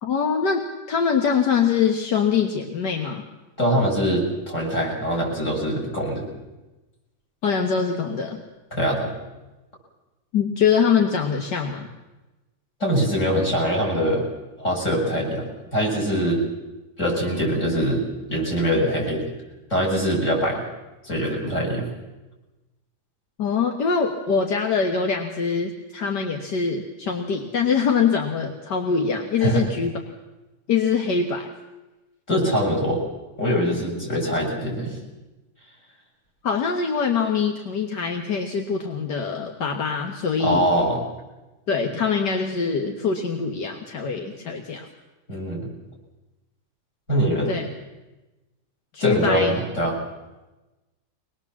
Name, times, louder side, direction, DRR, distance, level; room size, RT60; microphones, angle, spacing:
voice 1, 0.0-3.2 7.4-8.4 10.3-11.9 23.4-29.9 30.7-31.5 36.4-40.7 41.7-44.9 47.5-47.7 48.9-49.6, left 6 dB, 80° left, 3 dB, 2.1 m, -23 dB
voice 2, 3.6-6.2 8.7-9.1 12.8-14.3 14.6-15.4 15.7-16.4 17.0-18.0 18.3-19.2 19.7-20.6 21.0-21.9 29.4-29.7 32.3-33.0 33.4-35.0 40.4-41.0 45.3-45.7 47.1-47.6 49.0-50.0, equal, 45° left, -2 dB, 7.3 m, -23 dB
23.5 x 20.5 x 7.3 m, 1.1 s
omnidirectional pair, 1.8 m